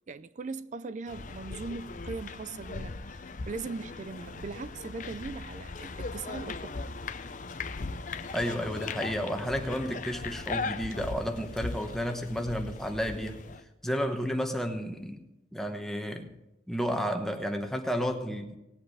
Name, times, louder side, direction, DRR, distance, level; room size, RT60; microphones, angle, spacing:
voice 1, 0.1-6.8, right 4 dB, 40° right, 0.4 m, -39 dB
sound 1, 1.1-13.6, left 3 dB, 45° left, 0.6 m, -39 dB
voice 2, 8.3-13.4 13.8-15.2 15.5-16.3 16.7-18.6, equal, ahead, 1.0 m, -32 dB
18.5 x 8.0 x 4.8 m
head